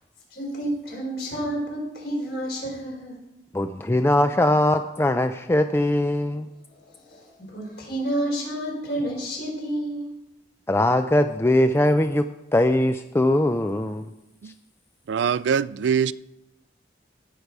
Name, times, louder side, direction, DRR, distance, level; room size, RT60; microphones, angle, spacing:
voice 1, 0.3-3.2 6.7-10.1, right 1 dB, 60° left, 4.5 m, -30 dB
voice 2, 3.5-6.5 10.7-12.2 12.5-14.1, left 1 dB, 15° left, 0.3 m, -21 dB
voice 3, 15.1-16.1, right 7 dB, 80° right, 0.4 m, -23 dB
18.0 x 6.7 x 4.7 m
head